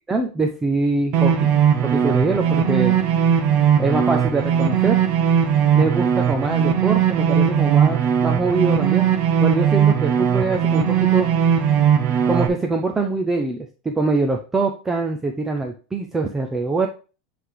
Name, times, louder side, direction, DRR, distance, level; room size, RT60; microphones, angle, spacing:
voice 1, 0.1-1.5 1.8-3.0 3.8-5.0 5.7-9.1 9.4-11.3 12.2-16.9, right 3 dB, 10° right, 3 dB, 0.5 m, -23 dB
sound 1, 1.1-12.5, right 8 dB, 35° right, 0.9 m, -18 dB
7.9 x 3.3 x 4.7 m, 0.34 s
supercardioid pair, 175°, 3 cm